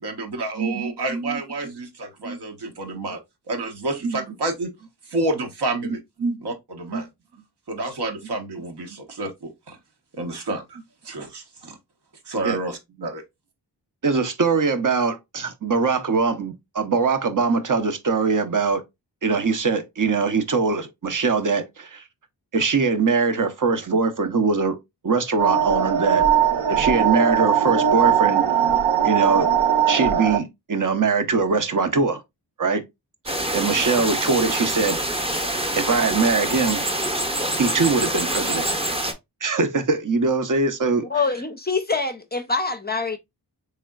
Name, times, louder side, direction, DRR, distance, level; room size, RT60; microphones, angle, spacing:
voice 1, 0.0-3.2 3.5-4.7 5.1-6.0 6.4-7.1 7.7-9.8 10.1-10.8 11.0-11.8 12.3-13.2, right 2 dB, 70° right, 1.0 m, -29 dB
voice 2, 0.6-1.7 2.2-2.4 4.0-4.3 6.2-6.4 6.9-7.0 8.9-9.0 12.4-12.6 13.0-13.1 14.0-18.8 19.2-22.0 22.5-24.8 25.0-26.2 26.7-28.4 29.0-29.5 29.9-32.2 32.6-32.8 33.2-35.0 35.7-36.8 37.6-38.7 39.4-41.0, right 4 dB, 50° right, 0.7 m, -22 dB
sound 1, 25.4-30.4, right 8 dB, 85° right, 0.6 m, -19 dB
sound 2, 33.3-39.1, right 1 dB, 15° right, 0.7 m, -25 dB
voice 3, 41.1-43.2, left 4 dB, 25° left, 0.5 m, -25 dB
3.6 x 3.3 x 2.3 m
cardioid pair, 55°, 42 cm